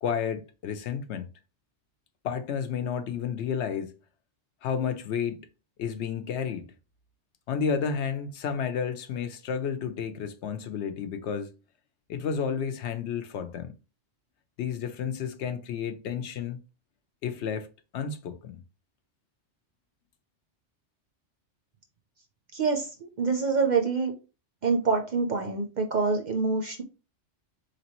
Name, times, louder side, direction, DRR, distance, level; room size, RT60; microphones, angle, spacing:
voice 1, 0.0-1.3 2.2-4.0 4.6-5.4 5.8-6.7 7.5-11.5 12.1-13.7 14.6-16.6 17.2-17.7 17.9-18.6, left 7 dB, 75° left, 0.9 m, -31 dB
voice 2, 22.5-24.1 24.6-26.8, right 4 dB, 50° right, 0.6 m, -26 dB
4.0 x 3.3 x 2.9 m
omnidirectional pair, 1.2 m